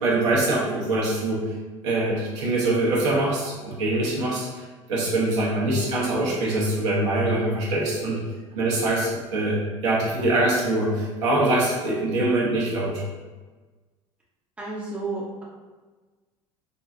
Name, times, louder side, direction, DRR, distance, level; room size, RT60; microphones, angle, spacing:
voice 1, 0.0-1.4 1.8-4.6 4.9-8.2 8.5-9.6 9.8-13.0, right 2 dB, 65° right, -5 dB, 1.0 m, -23 dB
voice 2, 14.6-15.4, right 3 dB, 5° right, -5 dB, 0.7 m, -31 dB
3.8 x 2.3 x 2.5 m, 1.3 s
figure-of-eight pair, 65°, 17 cm